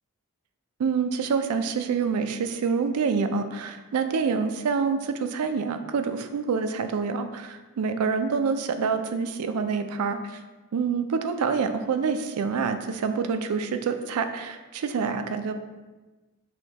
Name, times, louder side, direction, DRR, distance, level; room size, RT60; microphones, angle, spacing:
voice 1, 0.8-10.2 10.7-15.5, right 5 dB, 85° right, 8 dB, 0.4 m, -27 dB
6.3 x 2.2 x 2.8 m, 1.2 s
head